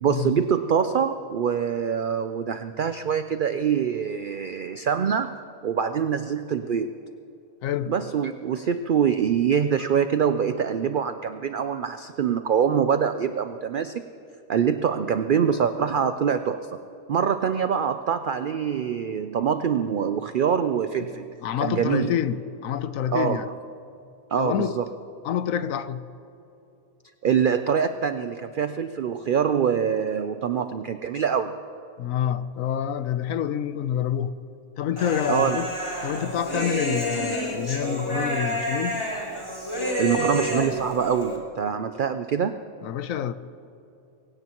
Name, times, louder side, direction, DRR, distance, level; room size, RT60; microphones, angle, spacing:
voice 1, 0.0-5.4 5.6-7.0 7.9-14.0 14.5-16.7 17.1-21.3 21.6-22.1 23.1-23.5 24.3-24.8 27.2-31.6 35.3-35.6 40.0-42.6, right 7 dB, 75° right, 0.4 m, -24 dB
voice 2, 7.6-7.9 21.0-21.1 21.4-23.5 24.4-24.8 25.2-26.0 32.0-34.3 34.8-35.7 36.0-39.1 42.8-43.3, left 9 dB, 75° left, 1.0 m, -27 dB
Human voice, 35.0-41.4, equal, 20° left, 2.9 m, -29 dB
23.0 x 16.5 x 3.0 m
omnidirectional pair, 1.4 m